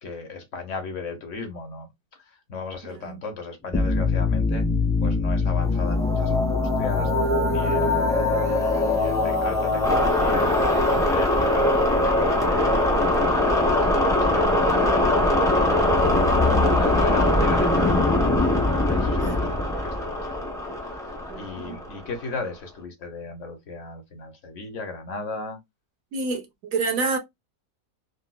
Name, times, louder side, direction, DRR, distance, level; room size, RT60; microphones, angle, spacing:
voice 1, 0.0-4.7 5.0-17.9 18.7-20.5 20.8-25.6, left 3 dB, 60° left, 1.0 m, -36 dB
sound 1, 3.7-22.2, left 2 dB, 5° left, 0.6 m, -21 dB
voice 2, 19.1-19.5 21.3-21.8 26.1-27.2, right 4 dB, 65° right, 1.1 m, -28 dB
3.9 x 2.2 x 2.3 m
omnidirectional pair, 1.7 m